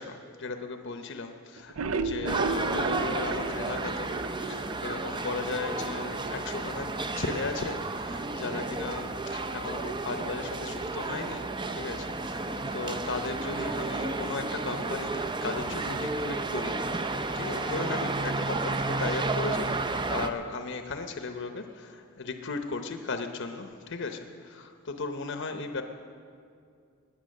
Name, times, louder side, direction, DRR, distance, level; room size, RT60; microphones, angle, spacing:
voice 1, 0.0-4.1 4.4-6.9 7.1-11.4 11.7-19.7 20.1-25.8, left 3 dB, 60° left, 6 dB, 0.8 m, -36 dB
sound 1, 1.6-4.8 5.2-5.3 5.6-5.7 6.1-6.2, right 4 dB, 75° right, 0.5 m, -33 dB
sound 2, 2.3-20.3, right 3 dB, 20° right, 0.5 m, -32 dB
17.5 x 9.9 x 6.5 m, 2.3 s
head